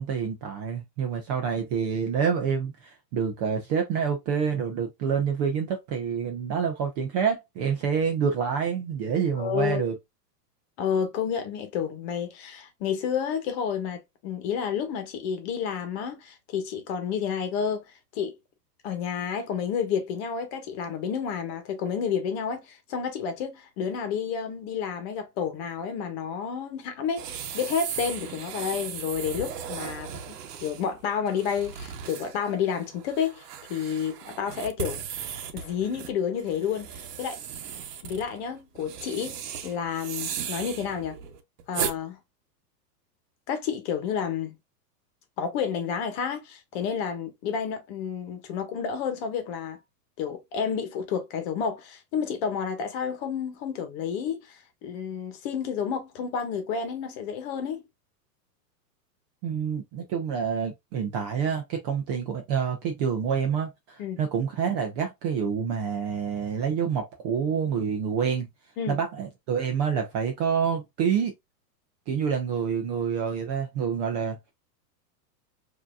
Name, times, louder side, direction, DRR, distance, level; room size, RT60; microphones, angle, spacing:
voice 1, 0.0-9.9 59.4-68.5 68.9-71.3 72.1-74.4, right 7 dB, 25° right, 0.5 m, -27 dB
voice 2, 9.3-9.8 10.8-17.8 18.1-18.4 18.8-27.3 27.5-35.0 35.5-37.4 38.0-39.4 39.6-41.2 41.7-42.2 43.5-44.6 45.4-49.8 50.2-57.8 64.0-64.2 68.8-69.0, left 7 dB, 40° left, 1.2 m, -30 dB
sound 1, 27.2-42.0, right 8 dB, 70° right, 1.0 m, -37 dB
4.9 x 2.8 x 2.3 m
supercardioid pair, 150°, 49 cm